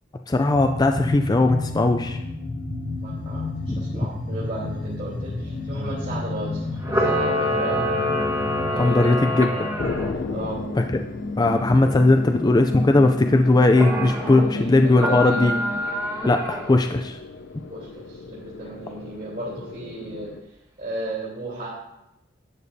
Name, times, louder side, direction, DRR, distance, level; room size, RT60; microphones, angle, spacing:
voice 1, 0.3-2.2 3.7-4.1 8.8-9.7 11.4-15.5 16.3-17.2, left 2 dB, 20° left, 5 dB, 0.4 m, -19 dB
sound 1, 0.5-15.8, left 2 dB, 40° left, 0.8 m, -32 dB
voice 2, 3.0-8.0 8.7-9.2 10.3-10.6 14.4-15.5 17.7-20.3 20.8-21.8, right 1 dB, 50° right, -8 dB, 3.1 m, -35 dB
Camera, 6.8-10.1 13.7-14.4 14.9-16.8, equal, 15° right, 1.2 m, -26 dB
sound 2, 9.8-20.4, left 3 dB, 85° left, 0.6 m, -38 dB
12.0 x 8.4 x 2.7 m, 0.90 s
head